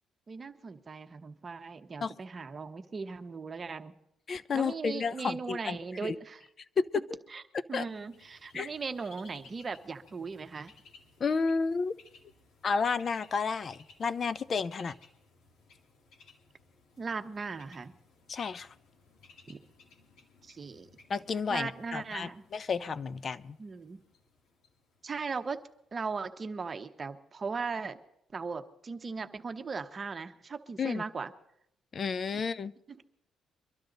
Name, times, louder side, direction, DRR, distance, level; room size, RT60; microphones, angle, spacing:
voice 1, 0.3-3.9 4.5-6.4 7.3-7.4 7.7-10.7 17.0-17.9 19.5-19.6 20.4-20.9 21.5-22.4 23.6-24.0 25.0-25.6 25.9-28.0 28.3-31.3 32.9-33.0, right 4 dB, 35° right, 8 dB, 1.0 m, -38 dB
voice 2, 4.3-5.8 6.0-6.2 6.8-7.0 7.7-7.9 8.5-8.7 11.2-11.9 12.6-14.9 18.3-18.7 21.1-23.6 30.8-31.0 31.9-32.7, left 5 dB, 45° left, 16 dB, 0.6 m, -31 dB
Bird, 7.9-25.7, left 4 dB, 80° left, 2.1 m, -60 dB
23.5 x 12.0 x 3.9 m, 0.76 s
cardioid pair, 90°, 0 cm